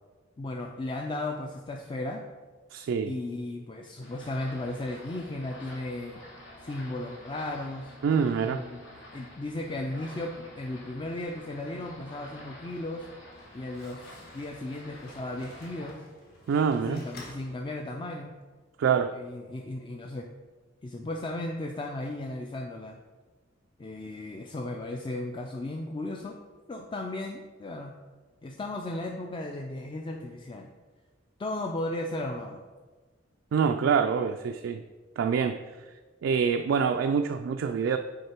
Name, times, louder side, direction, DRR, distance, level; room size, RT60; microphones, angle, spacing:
voice 1, 0.4-2.2 3.0-6.2 6.6-7.9 8.4-8.8 9.1-13.1 13.5-16.0 16.9-18.3 19.1-20.3 20.8-23.0 23.8-26.4 26.7-27.9 28.4-30.7 31.4-32.6, left 2 dB, 25° left, 2 dB, 0.4 m, -35 dB
voice 2, 2.7-3.1 8.0-8.6 16.5-17.0 18.8-19.1 33.5-34.8 35.2-35.6 36.2-38.0, right 6 dB, 75° right, 6 dB, 0.3 m, -25 dB
sound 1, 4.0-15.9, left 1 dB, 75° left, 1.8 m, -49 dB
Slam, 13.2-18.2, left 2 dB, 50° left, 1.4 m, -52 dB
6.5 x 4.6 x 4.4 m, 1.4 s
head